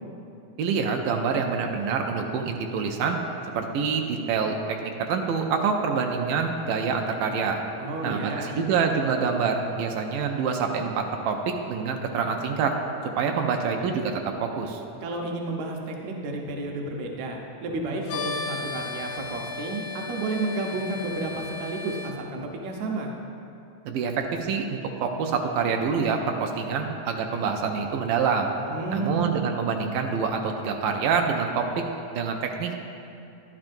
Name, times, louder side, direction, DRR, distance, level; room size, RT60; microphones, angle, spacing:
voice 1, 0.6-3.2 3.5-7.6 8.0-12.8 13.2-14.8 23.9-28.5 28.9-31.8 32.1-32.8, right 5 dB, 85° right, 3 dB, 2.2 m, -26 dB
voice 2, 7.8-8.6 15.0-23.1 28.7-29.3, right 2 dB, 70° right, 1 dB, 2.0 m, -31 dB
sound 1, 18.1-22.1, left 4 dB, 85° left, 2.2 m, -35 dB
12.0 x 11.0 x 2.6 m, 2.7 s
omnidirectional pair, 3.7 m